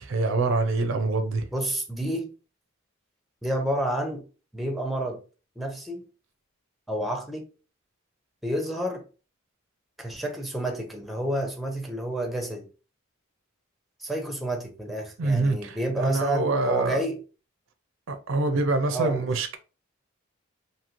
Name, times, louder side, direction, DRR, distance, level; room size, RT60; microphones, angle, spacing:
voice 1, 0.0-1.4 15.2-17.0 18.1-19.6, right 3 dB, 70° right, 0.4 m, -25 dB
voice 2, 1.5-2.3 3.4-4.2 4.5-5.2 5.6-6.0 6.9-7.4 8.4-9.0 10.0-12.7 14.0-17.2 18.9-19.3, right 1 dB, ahead, 0.5 m, -29 dB
3.0 x 2.7 x 2.4 m
head